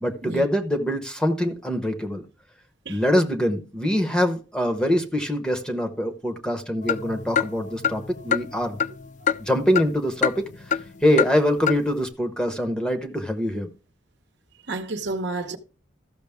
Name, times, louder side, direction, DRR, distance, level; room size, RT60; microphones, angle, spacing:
voice 1, 0.0-2.2 2.9-8.8 9.4-13.7, equal, 5° left, 0.8 m, -24 dB
sound 1, 6.8-10.0 10.2-10.9 11.2-11.3 11.7-11.8, left 7 dB, 40° left, 0.4 m, -26 dB
voice 2, 14.7-15.6, right 2 dB, 65° right, 0.9 m, -30 dB
14.0 x 6.2 x 3.5 m
head